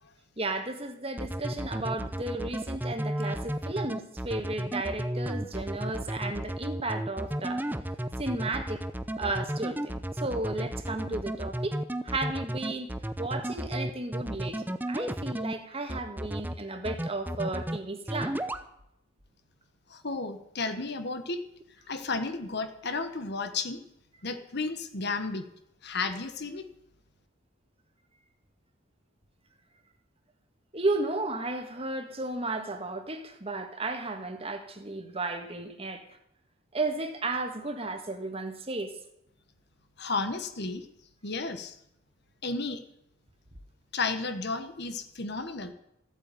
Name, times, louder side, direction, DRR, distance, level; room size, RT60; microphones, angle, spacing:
voice 1, 0.4-7.6 8.2-8.8 9.2-11.8 12.0-12.9 13.2-18.4 30.7-36.0 36.7-38.9, right 2 dB, 30° right, 6 dB, 1.8 m, -34 dB
sound 1, 1.2-15.5 15.9-16.5 16.9-17.8 18.1-18.6, right 1 dB, 10° right, 0.7 m, -33 dB
voice 2, 19.9-21.4 21.9-23.8 24.2-25.5 25.8-26.6 40.0-40.9 41.2-41.8 42.4-42.8 43.9-45.7, left 3 dB, 55° left, 9 dB, 1.4 m, -33 dB
15.0 x 8.7 x 9.2 m, 0.79 s
head